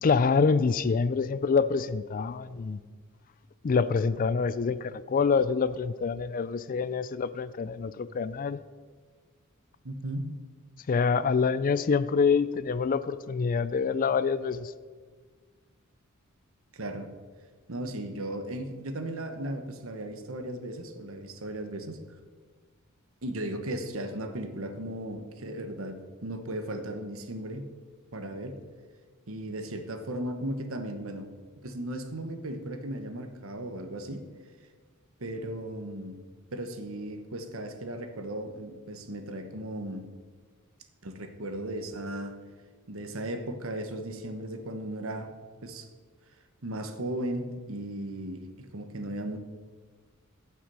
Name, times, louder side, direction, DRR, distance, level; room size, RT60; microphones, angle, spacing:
voice 1, 0.0-2.8 3.6-8.6 10.9-14.7, left 5 dB, 40° left, 15 dB, 0.4 m, -26 dB
voice 2, 9.8-10.4 16.7-17.1 17.7-22.0 23.2-27.7 28.1-28.6 29.3-31.3 31.6-34.2 35.2-36.2 36.5-40.1 41.0-42.3 42.9-45.3 45.6-45.9 46.6-49.4, right 1 dB, 70° right, 7 dB, 1.2 m, -36 dB
15.0 x 6.0 x 5.5 m, 1.5 s
head